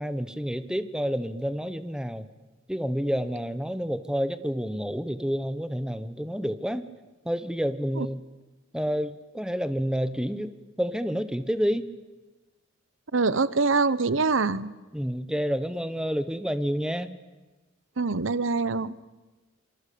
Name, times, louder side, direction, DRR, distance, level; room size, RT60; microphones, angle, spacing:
voice 1, 0.0-2.3 2.7-6.9 7.2-8.2 8.7-11.8 14.9-17.1, equal, 5° right, 12 dB, 1.1 m, -29 dB
voice 2, 13.1-14.7 18.0-18.9, right 4 dB, 80° right, 17 dB, 0.9 m, -24 dB
26.0 x 24.5 x 8.6 m, 1.2 s
head